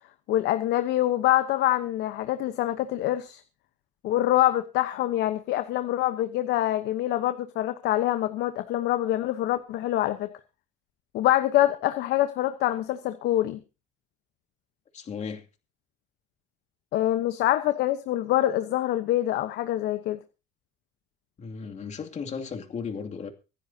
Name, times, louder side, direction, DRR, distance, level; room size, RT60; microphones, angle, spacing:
voice 1, 0.3-3.4 4.0-10.3 11.1-13.6 16.9-20.2, left 14 dB, 80° left, 1.1 m, -25 dB
voice 2, 14.9-15.4 21.4-23.3, left 6 dB, 45° left, 2.6 m, -35 dB
25.0 x 10.5 x 2.9 m
cardioid pair, 110°, 17 cm